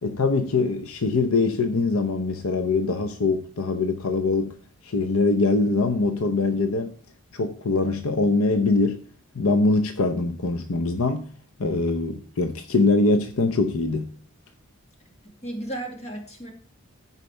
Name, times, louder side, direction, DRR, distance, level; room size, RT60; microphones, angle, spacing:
voice 1, 0.0-4.6 4.8-6.9 7.3-9.0 9.3-11.3 11.6-14.1, left 3 dB, 75° left, 0.8 m, -23 dB
voice 2, 15.2-16.5, right 1 dB, 30° left, 2.1 m, -34 dB
14.0 x 4.9 x 3.3 m
head